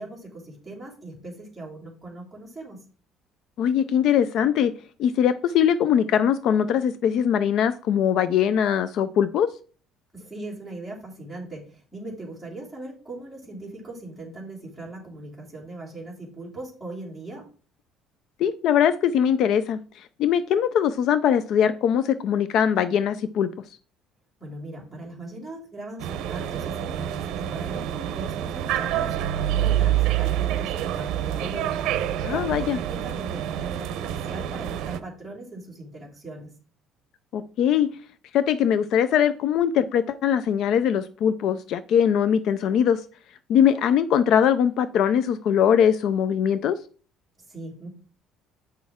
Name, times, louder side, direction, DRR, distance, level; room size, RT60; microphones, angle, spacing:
voice 1, 0.0-2.8 10.1-17.5 24.4-31.7 32.3-36.5 47.5-47.9, right 2 dB, ahead, 2.7 m, -39 dB
voice 2, 3.6-4.7 5.0-9.5 18.4-23.5 32.2-32.8 37.3-37.9 38.3-43.0 43.5-46.8, left 8 dB, 50° left, 0.4 m, -21 dB
sound 1, 26.0-35.0, right 11 dB, 65° right, 0.7 m, -27 dB
8.5 x 6.2 x 3.6 m
cardioid pair, 170°, 0 cm